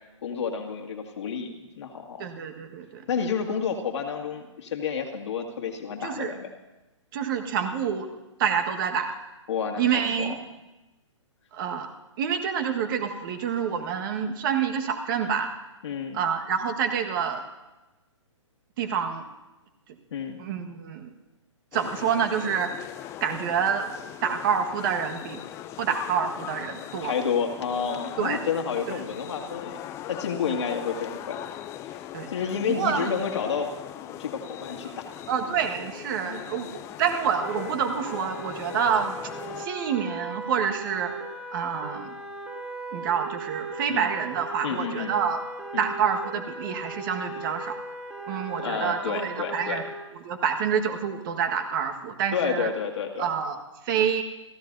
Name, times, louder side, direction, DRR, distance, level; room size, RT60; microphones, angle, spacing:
voice 1, 0.2-2.2 3.1-6.5 9.5-10.3 15.8-16.2 20.1-20.4 27.0-29.8 30.1-31.4 31.8-31.9 32.3-33.7 34.0-35.2 36.2-36.4 43.9-44.1 44.6-45.1 45.7-45.9 48.6-49.8 52.3-53.3, left 6 dB, 65° left, 2 dB, 2.2 m, -30 dB
voice 2, 2.2-3.0 6.0-6.3 7.1-8.1 8.4-9.1 9.8-10.4 11.5-11.9 12.2-15.5 16.1-17.4 18.8-19.3 20.4-21.1 21.7-22.8 23.2-23.9 24.2-25.4 25.8-27.1 28.2-28.4 28.9-29.0 32.1-32.3 32.7-33.1 35.3-39.2 39.6-41.2 41.5-42.2 42.9-45.4 45.8-47.8 48.3-49.8 50.1-52.7 53.2-54.2, right 7 dB, 40° right, 4 dB, 1.6 m, -27 dB
sound 1, 21.7-39.7, left 12 dB, 15° left, 0.4 m, -40 dB
sound 2, 37.4-49.9, right 2 dB, 10° right, 2.3 m, -38 dB
30.0 x 13.5 x 2.7 m, 1.1 s
hypercardioid pair, 140°, 16 cm